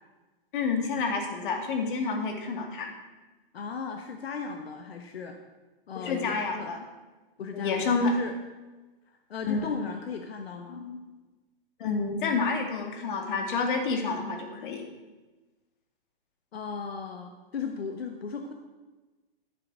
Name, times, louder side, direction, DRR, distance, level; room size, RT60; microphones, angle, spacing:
voice 1, 0.5-2.9 5.9-6.9 7.5-8.1 9.5-9.7 10.7-11.0 11.8-14.8, left 4 dB, 55° left, 4 dB, 2.5 m, -29 dB
voice 2, 3.5-5.4 5.9-6.7 7.4-8.3 9.3-10.8 16.5-18.5, left 5 dB, 90° left, 5 dB, 1.3 m, -36 dB
11.5 x 7.9 x 6.3 m, 1.2 s
hypercardioid pair, 150°, 30 cm